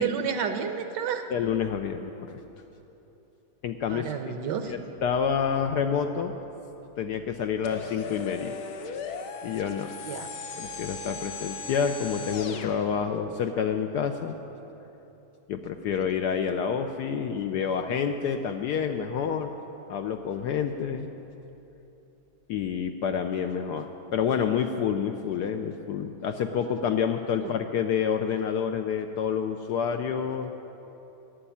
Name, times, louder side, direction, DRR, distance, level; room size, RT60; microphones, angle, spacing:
voice 1, 0.0-1.3 3.9-4.9 10.0-10.3 27.4-27.5, right 7 dB, 70° right, 7 dB, 1.3 m, -30 dB
voice 2, 1.3-2.4 3.6-4.4 4.6-6.4 7.0-8.6 9.4-9.9 10.6-14.4 15.5-19.5 19.9-21.1 22.5-30.5, left 7 dB, 70° left, 6 dB, 1.0 m, -28 dB
sound 1, 7.6-12.8, left 4 dB, 85° left, 1.7 m, -37 dB
11.5 x 8.2 x 9.9 m, 3.0 s
omnidirectional pair, 2.2 m